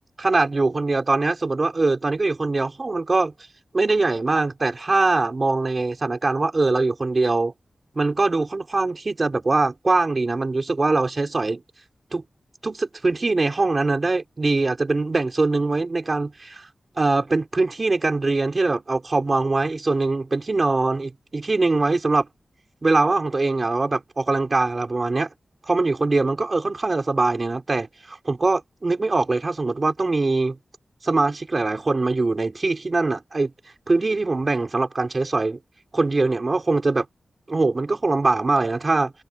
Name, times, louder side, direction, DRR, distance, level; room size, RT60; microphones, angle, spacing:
voice 1, 0.2-3.3 3.7-7.5 7.9-11.6 12.1-12.2 12.6-16.7 17.0-22.3 22.8-25.3 25.7-30.6 31.0-33.5 33.9-35.6 35.9-37.1 37.5-39.1, right 3 dB, 35° right, 4.3 m, -22 dB
wide cardioid pair, 145°, 0 cm